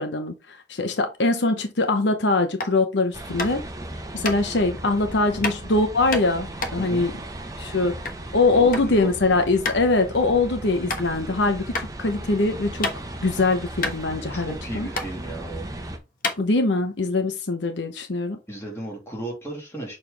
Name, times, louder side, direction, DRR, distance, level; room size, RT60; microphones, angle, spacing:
voice 1, 0.0-3.6 4.1-7.1 7.6-7.9 8.3-12.9 13.2-14.9 16.4-18.4, left 3 dB, 75° left, 0.9 m, -22 dB
sound 1, 2.5-2.8 3.4-3.7 4.2-4.4 5.4-5.6 6.1-8.2 8.5-8.9 9.2-9.3 9.6-9.8 10.3-10.4 10.9-11.0 11.7-11.9 12.3-13.3 13.5-13.6 13.8-14.6 14.9-15.1 15.7-15.8 16.2-16.9, left 3 dB, 50° left, 1.2 m, -29 dB
sound 2, 3.1-16.0, right 1 dB, 20° right, 0.9 m, -36 dB
voice 2, 6.8-7.1 8.5-9.1 14.3-15.7 18.5-20.0, right 2 dB, 15° left, 2.7 m, -35 dB
6.7 x 4.0 x 3.4 m
head